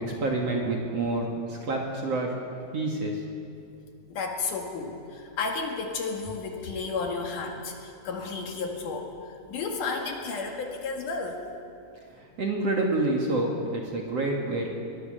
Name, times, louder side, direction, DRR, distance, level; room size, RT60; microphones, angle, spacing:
voice 1, 0.0-2.4 2.7-3.3 12.1-14.7, right 2 dB, 50° right, 0 dB, 2.4 m, -28 dB
voice 2, 4.1-9.1 9.5-11.4, left 4 dB, 60° left, 2 dB, 3.0 m, -32 dB
22.0 x 21.5 x 6.6 m, 2.6 s
omnidirectional pair, 4.6 m